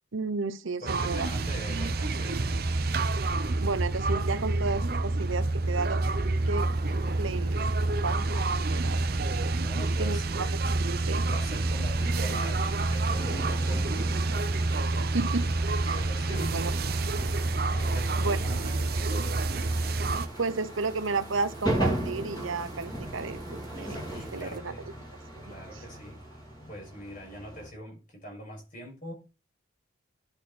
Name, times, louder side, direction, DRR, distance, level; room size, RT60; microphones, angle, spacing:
voice 1, 0.1-1.3 3.6-6.0 6.5-6.7 7.2-7.6 8.0-9.1 10.0-10.5 11.0-11.3 15.1-15.5 15.8-16.1 16.5-16.7 18.2-18.4 20.4-24.7 25.3-25.5, right 3 dB, 90° right, 0.9 m, -32 dB
voice 2, 0.8-2.8 9.5-10.3 11.3-13.9 15.9-16.6 17.7-19.9 23.9-24.9 25.4-29.1, equal, 40° left, 6.5 m, -43 dB
sound 1, 0.9-20.3, right 2 dB, 50° right, 0.7 m, -28 dB
sound 2, 6.6-24.6, right 2 dB, 20° right, 1.4 m, -50 dB
sound 3, 11.6-27.7, right 1 dB, 25° left, 4.5 m, -38 dB
10.5 x 6.4 x 4.2 m
head